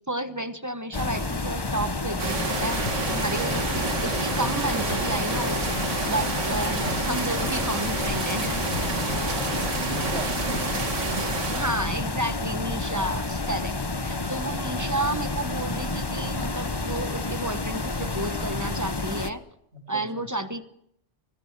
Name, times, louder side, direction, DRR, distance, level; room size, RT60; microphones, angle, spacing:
voice 1, 0.1-2.8 3.1-8.6 11.5-19.4 19.9-20.7, right 1 dB, 15° right, 10 dB, 1.0 m, -31 dB
sound 1, 0.9-19.3, left 3 dB, 20° left, 1.0 m, -30 dB
sound 2, 2.2-11.8, right 3 dB, 80° right, 2.4 m, -30 dB
sound 3, 2.8-3.2 3.7-4.1 4.8-5.3 6.8-7.2 8.7-9.1 10.4-10.8 11.7-12.1 12.9-13.3 14.2-14.6 14.9-15.4 16.1-16.5 17.2-17.6, left 1 dB, 65° left, 5.0 m, -40 dB
voice 2, 9.1-10.6 19.7-20.2, right 1 dB, 60° right, 3 dB, 3.6 m, -37 dB
26.0 x 18.5 x 6.6 m, 0.72 s
omnidirectional pair, 1.2 m